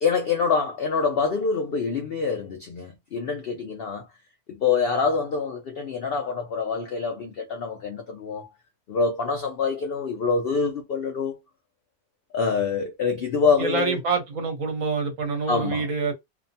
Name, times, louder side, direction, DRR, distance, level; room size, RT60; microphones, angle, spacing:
voice 1, 0.0-4.1 4.5-8.5 8.9-11.4 12.3-14.0 15.5-15.9, left 5 dB, 70° left, 0.5 m, -25 dB
voice 2, 13.6-16.1, right 4 dB, 65° right, 1.3 m, -26 dB
2.9 x 2.1 x 2.6 m
omnidirectional pair, 1.6 m